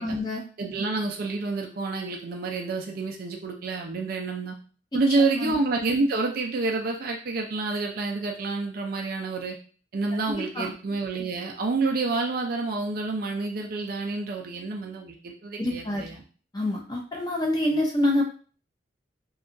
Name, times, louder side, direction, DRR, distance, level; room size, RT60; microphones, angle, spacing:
voice 1, 0.0-0.4 5.4-5.6 10.3-10.7 15.6-16.0 16.5-18.2, left 1 dB, 20° left, -1 dB, 0.6 m, -26 dB
voice 2, 0.6-4.5 4.9-9.6 9.9-16.2, right 3 dB, 50° right, 1 dB, 0.4 m, -28 dB
2.7 x 2.3 x 2.5 m, 0.40 s
head